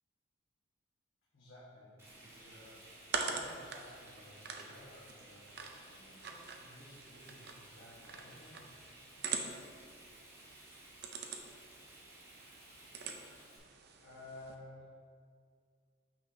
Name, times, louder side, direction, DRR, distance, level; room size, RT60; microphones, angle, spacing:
voice 1, 1.3-2.9 3.2-8.7 14.0-14.9, left 1 dB, 65° left, -10 dB, 1.5 m, -55 dB
Frying (food), 2.0-13.6, right 1 dB, 15° right, 1.5 m, -57 dB
sound 1, 2.0-14.6, right 5 dB, 55° right, 0.6 m, -45 dB
8.7 x 5.5 x 2.8 m, 2.2 s
head